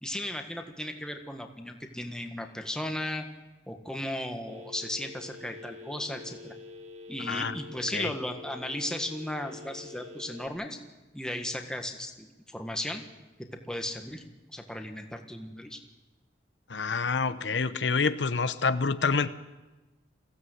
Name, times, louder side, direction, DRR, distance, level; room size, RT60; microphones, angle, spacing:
voice 1, 0.0-3.2 3.7-6.5 7.1-10.8 11.1-13.0 13.7-14.2 14.5-15.8, left 1 dB, 5° left, 4 dB, 1.6 m, -35 dB
Telephone, 4.5-10.5, left 3 dB, 40° right, 1.3 m, -46 dB
voice 2, 16.7-19.3, left 4 dB, 85° left, 12 dB, 0.8 m, -27 dB
22.0 x 16.0 x 8.0 m, 1.2 s
head